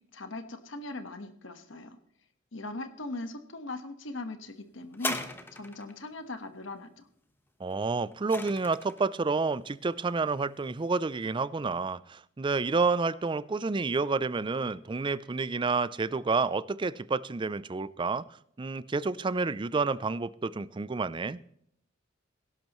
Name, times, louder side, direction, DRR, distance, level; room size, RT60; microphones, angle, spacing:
voice 1, 0.1-2.0 2.5-5.2 5.5-7.1, left 2 dB, 70° left, 9 dB, 1.4 m, -40 dB
sound 1, 4.9-6.0 7.7-9.1 9.9-10.0, left 2 dB, 10° left, 1.1 m, -37 dB
voice 2, 7.6-18.2 18.6-21.4, right 4 dB, 25° right, 18 dB, 0.4 m, -29 dB
17.5 x 12.0 x 3.1 m, 0.67 s
head